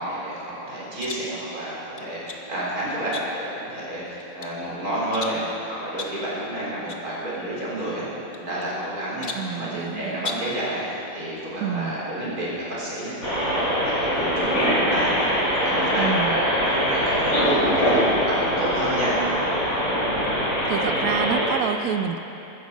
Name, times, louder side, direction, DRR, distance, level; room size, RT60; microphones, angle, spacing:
voice 1, 0.0-8.1 8.4-19.1, right 1 dB, 40° right, -7 dB, 4.4 m, -30 dB
sound 1, 1.0-1.3 2.0-2.5 3.1-3.6 4.1-4.6 5.1-5.5 6.0-6.3 6.9-7.1 7.3-7.4 8.3-8.9 9.2-9.6 10.2-10.6, left 3 dB, 75° left, 0.4 m, -36 dB
voice 2, 9.3-10.3 11.6-12.0 16.0-16.4 20.7-22.2, right 8 dB, 80° right, 9 dB, 0.8 m, -28 dB
sound 2, 13.2-21.5, equal, 40° left, 4.2 m, -23 dB
14.5 x 13.5 x 5.2 m, 2.9 s
omnidirectional pair, 2.4 m